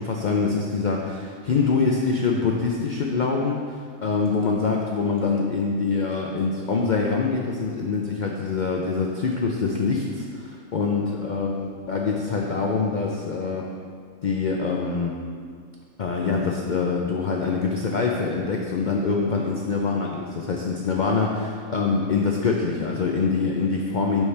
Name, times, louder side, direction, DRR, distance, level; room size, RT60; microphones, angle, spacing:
voice 1, 0.0-10.4 10.7-13.7 14.2-15.1 16.0-24.2, left 4 dB, 85° left, 0 dB, 0.4 m, -24 dB
10.0 x 4.2 x 3.3 m, 2.1 s
omnidirectional pair, 1.5 m